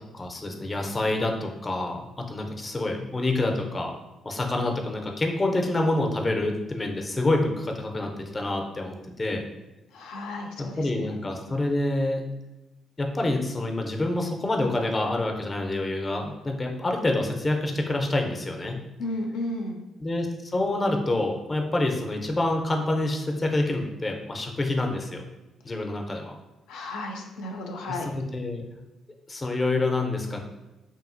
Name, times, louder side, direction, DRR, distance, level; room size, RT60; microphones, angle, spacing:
voice 1, 0.1-3.9 4.2-9.4 10.6-12.2 13.0-18.8 20.0-25.2 25.6-26.4 27.9-28.6 29.3-30.4, left 2 dB, 25° left, 2 dB, 0.4 m, -27 dB
voice 2, 9.9-11.2 19.0-19.8 26.7-28.1, left 1 dB, 90° left, 2 dB, 0.3 m, -33 dB
2.6 x 2.6 x 2.5 m, 1.0 s
cardioid pair, 90°, 0 cm